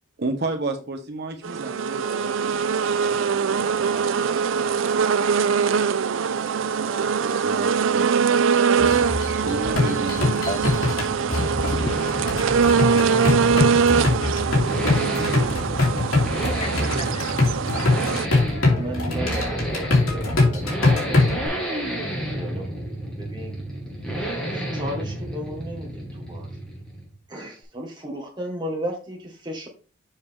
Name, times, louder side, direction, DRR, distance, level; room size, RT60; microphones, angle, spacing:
voice 1, 0.2-2.5 6.7-8.6 8.9-10.7, right 2 dB, 50° right, 1.2 m, -32 dB
sound 1, 1.4-18.3, right 6 dB, 65° right, 0.4 m, -22 dB
sound 2, 8.8-21.5, left 2 dB, 85° left, 2.5 m, -23 dB
sound 3, 10.0-27.2, right 1 dB, 5° left, 1.8 m, -31 dB
voice 2, 11.4-12.7 13.0-13.8 15.0-15.3 16.6-16.7, left 3 dB, 30° left, 0.4 m, -35 dB
voice 3, 18.7-20.7 21.1-21.2 22.0-22.6 23.0-23.5 24.5-26.5 27.3-29.7, equal, 20° right, 1.6 m, -34 dB
7.1 x 5.1 x 3.6 m
head